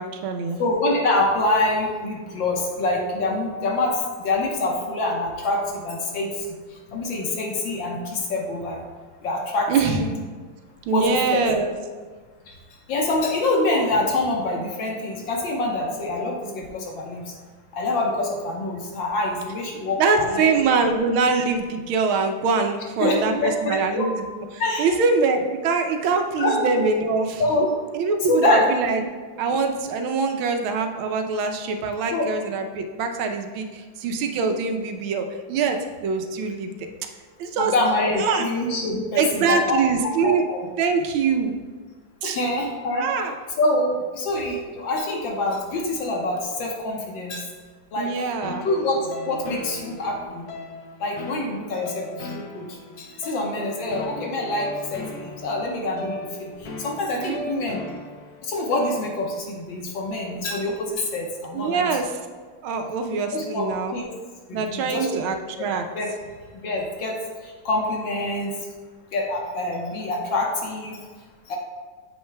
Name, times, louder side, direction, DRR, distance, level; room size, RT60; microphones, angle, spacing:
voice 1, 0.0-0.6 9.7-10.0 10.9-11.7 20.0-24.5 24.8-27.4 27.9-29.0 29.4-36.7 37.4-37.7 38.2-38.4 39.2-40.4 40.8-41.5 42.2-42.4 42.9-43.3 48.0-48.7 57.2-57.4 61.5-62.1 62.6-63.9 64.5-65.9, right 4 dB, 85° right, 5 dB, 1.5 m, -23 dB
voice 2, 0.6-6.6 6.9-8.8 9.2-10.1 10.9-11.4 12.5-12.6 12.9-17.3 17.7-20.5 23.0-24.1 24.6-25.0 26.4-26.7 27.4-27.7 28.3-28.7 32.1-32.3 37.6-39.8 40.2-40.6 42.2-43.1 43.6-47.5 47.9-48.1 48.6-49.0 49.3-50.5 51.0-52.7 53.0-57.8 58.4-61.9 63.3-64.1 64.5-65.1 66.0-66.1 66.5-67.2 67.4-68.5 69.1-71.0 71.5-71.6, left 2 dB, 70° left, 0 dB, 1.7 m, -25 dB
sound 1, 48.4-59.4, left 2 dB, 85° left, 1.7 m, -37 dB
8.7 x 7.1 x 2.2 m, 1.5 s
omnidirectional pair, 2.2 m